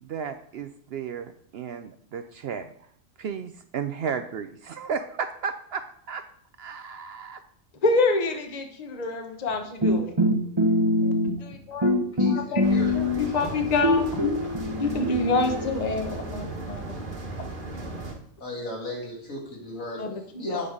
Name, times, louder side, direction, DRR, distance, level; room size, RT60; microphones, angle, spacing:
voice 1, 0.0-2.7 3.2-6.2 6.6-7.4, right 6 dB, 60° right, 9 dB, 0.7 m, -34 dB
voice 2, 7.8-10.1 11.0-11.1 11.4-11.9 12.3-14.2 14.5-17.1 17.4-17.5 20.0-20.7, left 3 dB, 35° left, 5 dB, 1.0 m, -27 dB
sound 1, 9.8-11.5 11.8-13.4 13.8-16.5, left 1 dB, 25° right, 0.9 m, -24 dB
voice 3, 12.2-13.3 18.4-20.0 20.4-20.7, left 1 dB, 85° left, -2 dB, 2.7 m, -36 dB
sound 2, 12.6-18.1, right 2 dB, 40° right, 1.5 m, -36 dB
8.8 x 5.4 x 4.9 m, 0.64 s
omnidirectional pair, 1.4 m